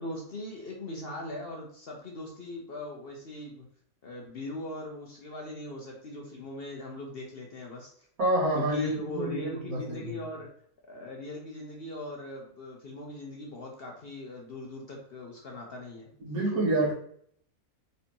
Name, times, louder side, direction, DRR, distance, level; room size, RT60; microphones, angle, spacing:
voice 1, 0.0-3.6 4.0-7.9 8.5-10.5 10.9-16.1, left 2 dB, 50° left, 0 dB, 0.8 m, -39 dB
voice 2, 8.2-10.2 16.2-16.9, right 1 dB, 75° right, -6 dB, 2.0 m, -28 dB
4.0 x 3.3 x 2.9 m, 0.63 s
omnidirectional pair, 1.5 m